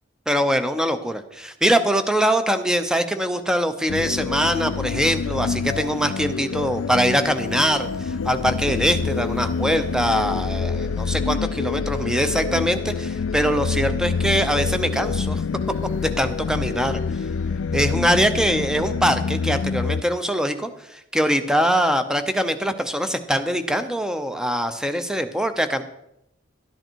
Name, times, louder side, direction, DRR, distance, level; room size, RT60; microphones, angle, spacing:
voice 1, 0.3-15.4 16.0-17.0 17.7-25.8, equal, 5° right, 9 dB, 0.7 m, -23 dB
sound 1, 3.9-20.0, left 5 dB, 85° left, 0.4 m, -26 dB
12.0 x 10.5 x 4.6 m, 0.84 s
head